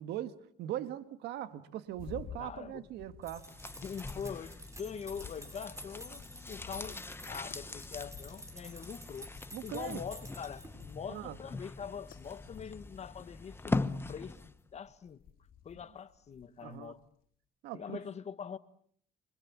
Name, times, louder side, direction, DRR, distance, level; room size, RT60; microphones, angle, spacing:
voice 1, 0.0-3.5 9.5-10.0 11.1-11.4 16.6-16.9 17.6-18.0, right 12 dB, 80° right, 1.7 m, -40 dB
sound 1, 1.9-17.1, left 9 dB, 60° left, 4.3 m, -55 dB
voice 2, 2.4-2.9 3.8-9.3 9.6-15.2 15.6-17.0 17.7-18.6, left 7 dB, 40° left, 1.5 m, -43 dB
sound 2, 3.2-11.0, equal, 15° right, 7.3 m, -51 dB
sound 3, 3.4-14.6 14.9-15.0, left 3 dB, 15° left, 1.1 m, -41 dB
29.0 x 26.0 x 7.4 m
cardioid pair, 110°, 17 cm